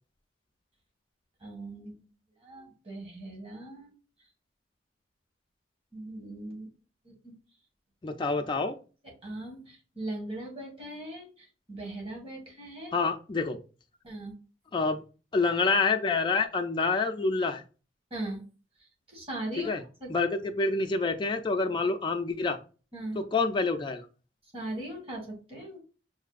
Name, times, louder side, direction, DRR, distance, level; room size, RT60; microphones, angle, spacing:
voice 1, 1.4-2.0 2.4-3.9 5.9-6.7 7.0-7.3 9.2-12.9 14.0-14.3 18.1-18.4 19.1-19.7 20.0-20.1 22.9-23.2 24.5-25.8, right 1 dB, 35° right, -1 dB, 1.5 m, -39 dB
voice 2, 8.0-8.8 12.9-13.6 14.7-15.0 15.3-17.6 19.6-19.8 20.1-22.6 23.2-24.0, left 3 dB, 25° left, 5 dB, 0.4 m, -27 dB
5.8 x 2.6 x 2.4 m, 0.35 s
head